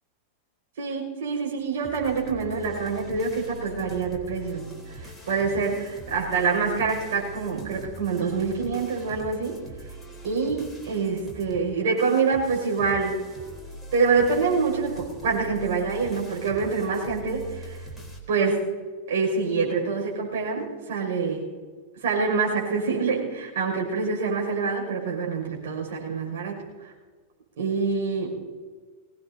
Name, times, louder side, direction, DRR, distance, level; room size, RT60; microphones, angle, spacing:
voice 1, 0.8-9.6 10.2-13.2 13.9-17.8 18.3-18.7 19.1-21.4 22.0-26.9 27.6-28.4, right 4 dB, 60° right, -1 dB, 6.1 m, -26 dB
sound 1, 1.8-18.2, right 1 dB, 5° left, 3.7 m, -42 dB
22.5 x 18.0 x 2.8 m, 1.5 s
figure-of-eight pair, 90°, 0 cm